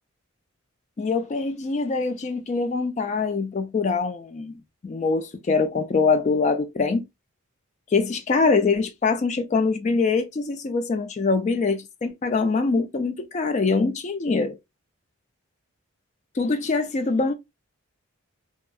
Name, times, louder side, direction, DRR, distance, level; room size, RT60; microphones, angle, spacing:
voice 1, 1.0-4.5 4.8-7.0 7.9-14.6 16.4-17.3, left 4 dB, 35° left, 0.3 m, -23 dB
2.6 x 2.3 x 2.3 m
head